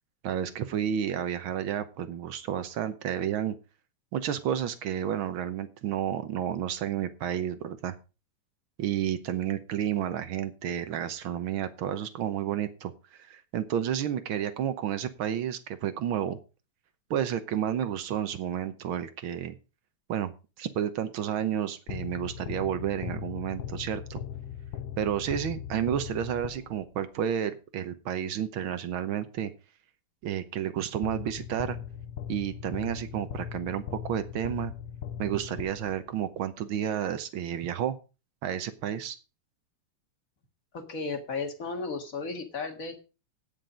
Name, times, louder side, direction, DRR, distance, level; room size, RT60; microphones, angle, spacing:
voice 1, 0.2-3.6 4.1-8.0 8.8-16.4 17.1-19.6 20.1-20.3 20.6-24.2 25.0-29.5 30.2-31.8 32.3-34.7 35.2-38.0 38.4-39.2, right 10 dB, 70° right, 11 dB, 1.2 m, -31 dB
sound 1, 21.9-27.0 31.0-36.2, left 9 dB, 80° left, 1.3 m, -39 dB
voice 2, 40.7-43.0, left 4 dB, 35° left, 5 dB, 1.7 m, -34 dB
17.0 x 5.9 x 5.1 m, 0.32 s
omnidirectional pair, 3.3 m